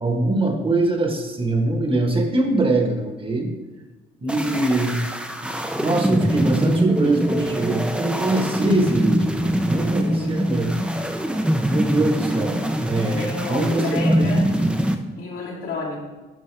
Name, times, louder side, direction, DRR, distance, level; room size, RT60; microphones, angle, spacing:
voice 1, 0.0-3.5 4.2-5.0 5.4-9.2 9.6-10.7 11.6-14.3, right 2 dB, 25° right, 4 dB, 1.4 m, -23 dB
sound 1, 4.3-15.0, equal, 5° right, 0.6 m, -23 dB
voice 2, 10.0-10.4 13.1-14.5 15.2-16.0, left 3 dB, 85° left, -5 dB, 2.5 m, -31 dB
11.0 x 5.2 x 3.4 m, 1.2 s
cardioid pair, 90°, 20 cm